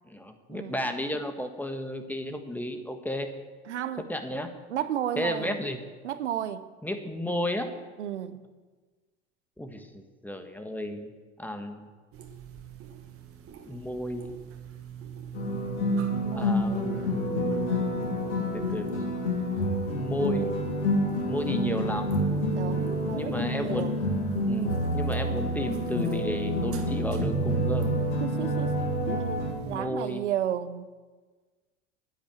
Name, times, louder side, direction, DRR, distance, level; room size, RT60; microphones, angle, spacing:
voice 1, 0.1-3.3 4.1-4.5 5.2-5.8 6.8-7.7 9.6-11.1 11.4-11.9 13.7-14.4 16.3-17.2 18.5-19.0 19.9-20.6 21.3-22.3 23.1-23.9 24.4-27.9 29.6-30.3, left 1 dB, 5° left, 6 dB, 1.5 m, -33 dB
voice 2, 3.7-4.0 4.7-5.5 6.0-6.6 8.0-8.4 16.2-17.2 22.5-24.0 28.2-28.7 29.1-30.9, right 10 dB, 85° right, 13 dB, 0.8 m, -33 dB
sound 1, 12.1-29.8, right 8 dB, 40° right, 1.7 m, -44 dB
sound 2, 15.3-29.5, equal, 85° left, 2.3 m, -28 dB
9.9 x 9.5 x 7.4 m, 1.4 s
hypercardioid pair, 85°, 34 cm